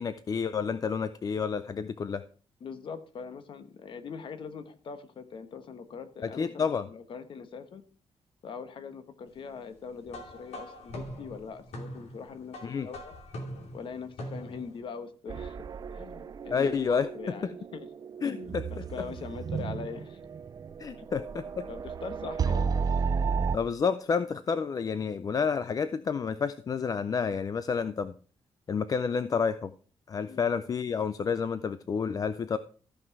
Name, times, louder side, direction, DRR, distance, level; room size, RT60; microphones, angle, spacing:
voice 1, 0.0-2.2 6.2-6.9 12.6-12.9 16.5-17.3 18.2-18.8 20.8-21.7 23.5-28.1 28.7-29.7 30.1-32.6, left 6 dB, 35° left, 12 dB, 0.4 m, -30 dB
voice 2, 2.6-7.8 8.4-13.1 13.7-15.6 15.9-17.9 18.2-20.2 21.0-21.1 21.7-22.7 30.3-30.5, left 6 dB, 55° left, 10 dB, 1.2 m, -42 dB
sound 1, 10.1-14.8, equal, 85° left, 2.7 m, -42 dB
sound 2, 15.3-23.6, right 5 dB, 35° right, 0.4 m, -33 dB
14.0 x 5.8 x 4.7 m, 0.40 s
wide cardioid pair, 160°, 11 cm